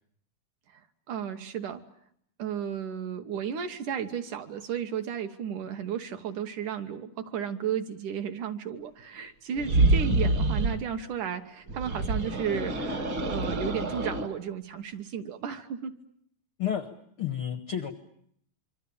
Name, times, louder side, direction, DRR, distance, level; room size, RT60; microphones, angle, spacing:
voice 1, 1.1-1.8 2.4-15.9, right 8 dB, 65° right, 7 dB, 2.4 m, -34 dB
sound 1, 9.6-10.8 11.7-14.3, right 2 dB, 45° right, 1.8 m, -26 dB
voice 2, 16.6-16.9 17.2-17.9, left 9 dB, 75° left, 11 dB, 1.2 m, -30 dB
26.5 x 25.0 x 8.6 m, 0.67 s
omnidirectional pair, 4.5 m